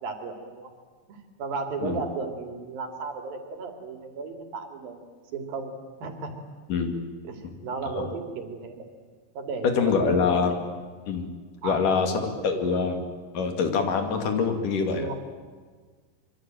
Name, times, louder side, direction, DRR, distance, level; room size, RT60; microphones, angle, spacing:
voice 1, 0.0-0.7 1.1-5.0 5.3-6.3 7.2-8.9 9.3-10.6 11.6-12.6 14.9-15.1, right 4 dB, 80° right, 5 dB, 4.5 m, -35 dB
voice 2, 9.6-10.6 11.1-11.3 11.6-13.0 13.3-15.1, left 5 dB, 65° left, 5 dB, 3.9 m, -25 dB
25.5 x 24.5 x 9.2 m, 1.5 s
omnidirectional pair, 4.1 m